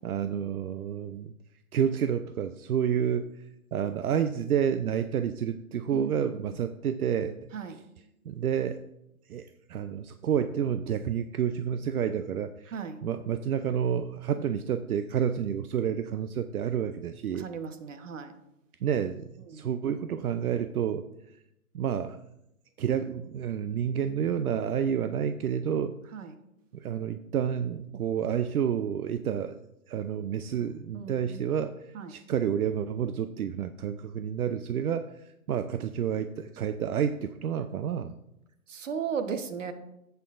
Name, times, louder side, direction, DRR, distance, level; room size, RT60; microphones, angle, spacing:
voice 1, 0.0-1.3 1.7-3.3 3.7-7.4 7.7-7.8 8.3-8.8 9.3-17.5 18.8-19.2 19.5-21.1 21.7-22.2 22.8-26.0 26.7-29.6 29.9-35.1 35.5-38.1, right 8 dB, 80° right, 11 dB, 0.6 m, -29 dB
voice 2, 5.9-6.4 7.5-7.8 12.7-13.0 17.3-18.3 19.5-19.7 26.1-26.3 30.9-31.5 31.9-32.1 38.7-39.7, right 6 dB, 60° right, 8 dB, 1.1 m, -36 dB
11.5 x 8.2 x 2.5 m, 0.85 s
hypercardioid pair, 160°, 43 cm